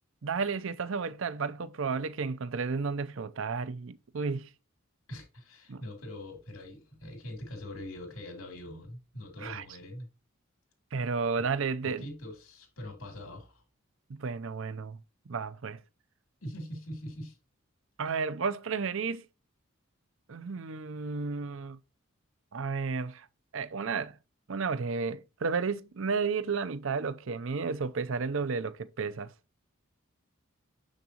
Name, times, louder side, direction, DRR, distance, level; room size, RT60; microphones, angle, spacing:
voice 1, 0.2-4.5 5.7-5.8 9.4-9.6 10.9-12.0 14.1-15.0 15.3-15.8 18.0-19.3 20.3-21.8 22.5-23.3 23.5-24.2 24.5-29.3, right 5 dB, 65° right, 0.6 m, -32 dB
voice 2, 5.1-10.1 11.4-11.5 11.8-13.6 16.4-17.4, left 1 dB, 85° left, 3.2 m, -43 dB
7.0 x 6.5 x 2.9 m
head